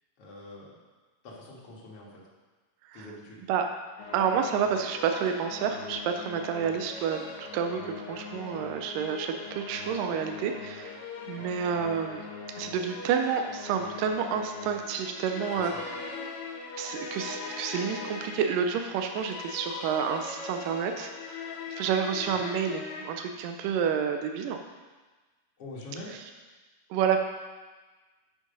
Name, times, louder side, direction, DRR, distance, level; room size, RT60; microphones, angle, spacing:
voice 1, 0.2-0.8 1.2-2.1 2.9-3.4 11.4-11.5 15.5-15.8 22.2-22.4 25.6-26.1, left 2 dB, 50° left, -6 dB, 2.3 m, -44 dB
sound 1, 4.0-23.2, left 4 dB, 90° left, 3.0 m, -41 dB
voice 2, 4.1-11.0 11.3-12.3 12.6-15.9 16.8-24.6 26.9-27.2, right 7 dB, 85° right, 5 dB, 2.3 m, -29 dB
8.6 x 6.4 x 5.3 m, 1.3 s
omnidirectional pair, 3.8 m